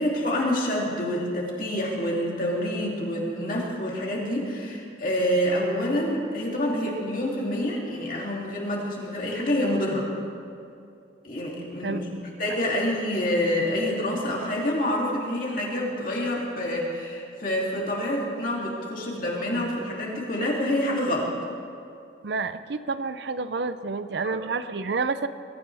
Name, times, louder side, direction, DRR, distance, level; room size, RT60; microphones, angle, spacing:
voice 1, 0.0-10.1 11.2-12.0 12.4-21.3 24.2-24.4, left 1 dB, 45° left, -3 dB, 2.9 m, -27 dB
voice 2, 11.8-12.3 22.2-25.3, right 4 dB, 65° right, 12 dB, 0.5 m, -29 dB
22.0 x 14.0 x 3.5 m, 2.5 s
head